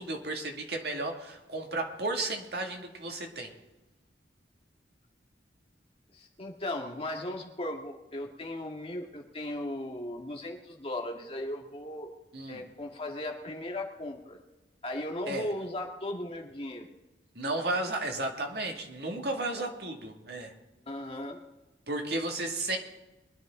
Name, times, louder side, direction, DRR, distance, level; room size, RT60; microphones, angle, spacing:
voice 1, 0.0-3.5 12.3-12.6 15.3-15.5 17.3-20.5 21.9-22.8, right 2 dB, 60° right, 2 dB, 2.2 m, -33 dB
voice 2, 6.1-12.1 12.5-14.4 14.8-16.9 20.9-21.4, left 1 dB, 30° left, 1 dB, 1.8 m, -37 dB
23.0 x 10.5 x 3.8 m, 1.1 s
head